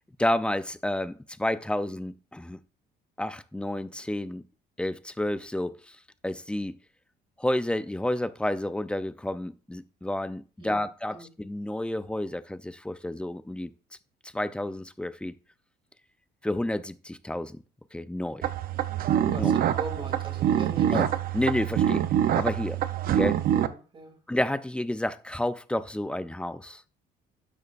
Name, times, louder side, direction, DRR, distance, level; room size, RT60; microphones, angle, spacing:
voice 1, 0.2-2.6 3.2-4.4 4.8-6.0 6.2-6.8 7.4-13.7 14.2-15.3 16.4-17.6 17.9-18.5 19.2-19.6 20.5-20.6 20.9-22.0 22.3-22.8 23.1-23.4 24.3-26.8, left 1 dB, 5° left, 0.6 m, -30 dB
voice 2, 10.6-11.3 19.3-21.0 23.5-24.2, right 3 dB, 30° right, 3.2 m, -41 dB
sound 1, 18.4-23.7, right 10 dB, 60° right, 0.8 m, -25 dB
12.5 x 8.6 x 2.6 m
cardioid pair, 110°, 17 cm